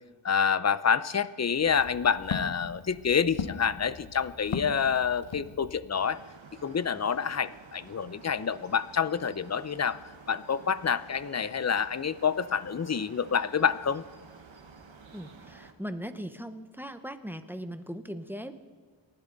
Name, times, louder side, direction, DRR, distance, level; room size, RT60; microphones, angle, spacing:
voice 1, 0.2-6.2 6.6-10.0 10.3-14.0, left 6 dB, 35° left, 16 dB, 0.6 m, -27 dB
Walk footsteps, 1.5-6.0, left 6 dB, 75° left, 0.9 m, -39 dB
sound 1, 5.9-15.7, right 4 dB, 75° right, 1.5 m, -51 dB
voice 2, 15.1-18.5, equal, 5° right, 9 dB, 1.0 m, -39 dB
29.5 x 11.5 x 4.0 m, 1.5 s
wide cardioid pair, 90°, 48 cm